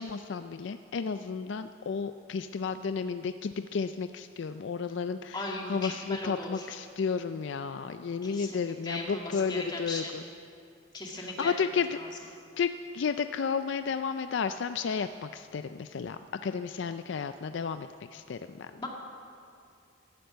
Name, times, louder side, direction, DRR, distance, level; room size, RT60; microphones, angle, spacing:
voice 1, 0.0-5.4 5.7-10.2 11.2-11.9 12.2-18.7, left 5 dB, 60° left, 10 dB, 0.4 m, -32 dB
voice 2, 5.3-6.7 8.2-10.2 10.9-11.5 11.9-12.1 18.8-18.9, left 2 dB, 20° left, 0 dB, 1.8 m, -38 dB
12.0 x 11.5 x 8.0 m, 2.4 s
head